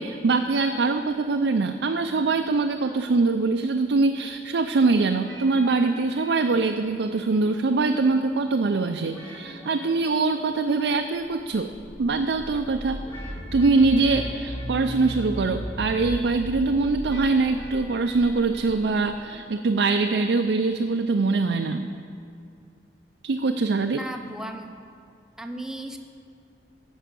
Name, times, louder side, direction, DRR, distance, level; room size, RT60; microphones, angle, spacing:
voice 1, 0.0-11.7 12.0-13.0 13.5-21.9 23.2-24.0, right 3 dB, 80° right, 5 dB, 0.5 m, -23 dB
sound 1, 5.1-21.0, equal, 15° left, 1.9 m, -47 dB
sound 2, 11.3-19.1, equal, 35° left, 1.3 m, -36 dB
voice 2, 23.9-24.7 25.4-26.0, right 1 dB, 5° right, 4 dB, 0.6 m, -35 dB
14.5 x 5.5 x 7.5 m, 2.3 s
head